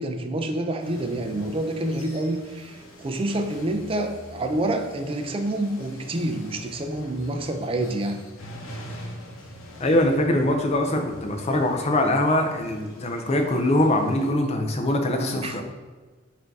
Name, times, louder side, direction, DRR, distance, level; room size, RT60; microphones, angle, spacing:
voice 1, 0.0-8.2 15.4-15.6, right 1 dB, 30° right, 5 dB, 0.4 m, -28 dB
sound 1, 0.8-14.3, equal, 85° left, 0.8 m, -44 dB
voice 2, 9.8-15.6, left 1 dB, 30° left, 4 dB, 0.5 m, -23 dB
4.3 x 2.7 x 4.6 m, 1.3 s
head